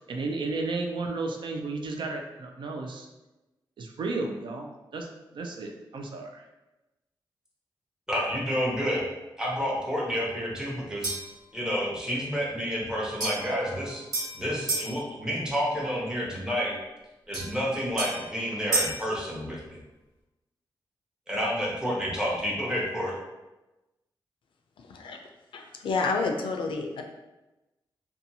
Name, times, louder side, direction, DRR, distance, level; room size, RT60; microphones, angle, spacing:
voice 1, 0.1-3.1 3.8-5.1 5.3-6.4, right 3 dB, 65° right, 3 dB, 0.4 m, -33 dB
voice 2, 8.1-9.0 9.4-11.2 11.5-14.0 14.3-16.7 17.3-19.8 21.3-23.1, equal, 10° right, -4 dB, 0.8 m, -29 dB
sound 1, 11.0-11.4 13.2-14.9 17.3-19.1, right 3 dB, 50° right, 1.1 m, -32 dB
voice 3, 24.8-25.2 25.5-27.0, left 4 dB, 75° left, 3 dB, 0.4 m, -29 dB
2.7 x 2.2 x 2.7 m, 1.0 s
wide cardioid pair, 95°, 9 cm